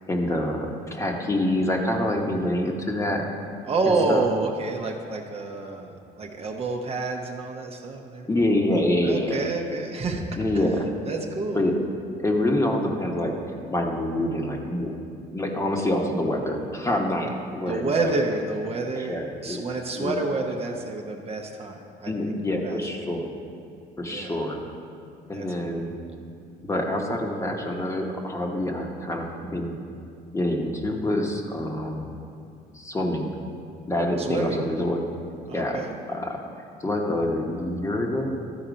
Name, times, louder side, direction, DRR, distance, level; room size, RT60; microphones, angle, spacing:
voice 1, 0.0-3.2 4.1-4.2 8.3-9.4 10.4-10.9 11.5-11.7 12.2-13.3 13.7-14.9 15.3-18.1 19.0-19.6 19.9-20.2 22.1-23.3 24.0-24.6 25.3-25.9 26.6-29.8 30.3-32.1 32.7-33.3 33.9-35.0 35.5-35.8 36.1-38.3, left 1 dB, 15° left, 1 dB, 1.0 m, -26 dB
voice 2, 3.7-8.3 9.0-10.2 10.6-11.7 17.7-22.1 22.6-22.8 24.1-24.4 25.3-25.9 34.2-34.6 35.5-35.9, right 3 dB, 35° right, 2 dB, 0.8 m, -28 dB
12.0 x 4.3 x 5.1 m, 2.4 s
cardioid pair, 110°, 17 cm